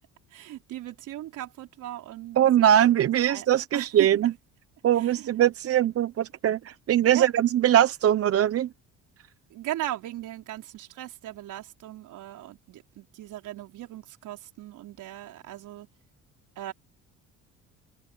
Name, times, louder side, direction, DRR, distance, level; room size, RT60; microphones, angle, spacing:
voice 1, 0.3-3.5 3.7-4.1 5.0-5.3 7.1-7.3 9.5-15.9 16.6-16.7, right 14 dB, 70° right, 4.1 m, -38 dB
voice 2, 2.4-4.3 4.8-8.7, right 11 dB, 45° right, 0.8 m, -21 dB
open air
cardioid pair, 100°, 32 cm